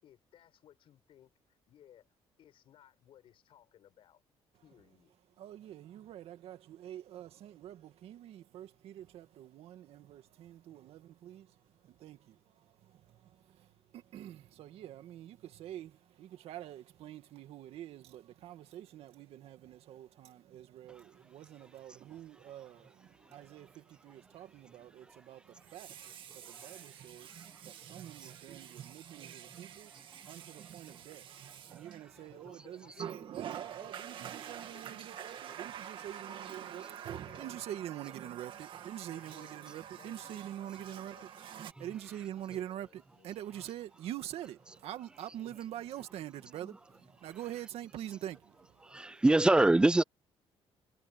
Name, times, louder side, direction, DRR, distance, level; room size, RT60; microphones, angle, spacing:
voice 1, 0.0-2.1 2.4-4.2 4.6-5.1 32.1-35.6 36.0-38.3 38.9-41.3 41.9-43.3, left 11 dB, 55° left, 7.0 m, -61 dB
voice 2, 5.4-36.8 37.4-41.3 41.8-49.2, right 12 dB, 65° right, 2.2 m, -46 dB
Water tap faucet, 22.0-22.2 25.6-32.4 33.0-41.7, right 9 dB, 50° right, 2.0 m, -47 dB
voice 3, 48.9-50.0, right 2 dB, 10° right, 0.4 m, -24 dB
cardioid pair, 155°, 11 cm